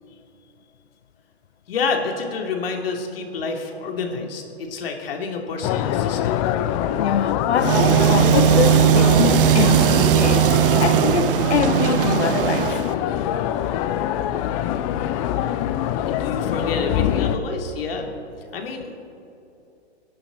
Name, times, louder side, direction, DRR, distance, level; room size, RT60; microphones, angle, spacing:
voice 1, 1.7-6.4 16.0-18.2 18.5-18.9, left 4 dB, 60° left, 2.9 m, -28 dB
sound 1, 5.6-17.4, left 11 dB, 30° left, 0.7 m, -24 dB
voice 2, 7.0-12.8, left 8 dB, 80° left, 0.7 m, -24 dB
sound 2, 7.6-12.9, right 12 dB, 55° right, 0.7 m, -18 dB
29.5 x 11.5 x 4.0 m
hypercardioid pair, 125°, 32 cm